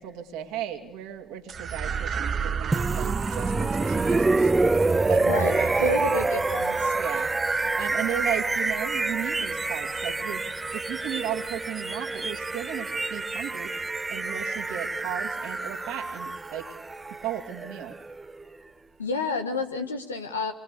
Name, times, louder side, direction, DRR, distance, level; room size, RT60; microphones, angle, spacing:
voice 1, 0.0-6.2 6.9-10.4 10.7-16.7 17.2-18.0, right 11 dB, 70° right, 3 dB, 2.3 m, -36 dB
sound 1, 1.5-10.1, right 7 dB, 45° right, 1.0 m, -35 dB
sound 2, 2.7-18.6, right 3 dB, 20° right, 1.1 m, -27 dB
voice 2, 5.2-6.9 19.0-20.5, left 3 dB, 90° left, 5 dB, 1.5 m, -30 dB
27.0 x 23.0 x 6.8 m, 0.92 s
figure-of-eight pair, 50°, 0 cm